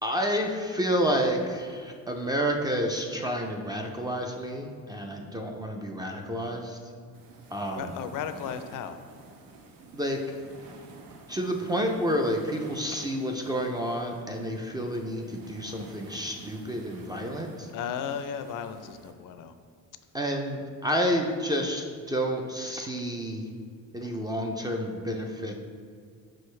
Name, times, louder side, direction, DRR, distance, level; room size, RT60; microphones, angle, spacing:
voice 1, 0.0-6.8 7.5-8.0 9.9-10.4 11.3-17.7 20.1-23.5 23.9-25.5, equal, 10° right, 2 dB, 0.3 m, -30 dB
sound 1, 7.1-19.1, right 3 dB, 85° right, 0.8 m, -50 dB
voice 2, 7.8-9.0 17.7-19.5, left 8 dB, 65° left, 10 dB, 0.5 m, -35 dB
6.3 x 4.9 x 3.2 m, 2.1 s
cardioid pair, 140°, 34 cm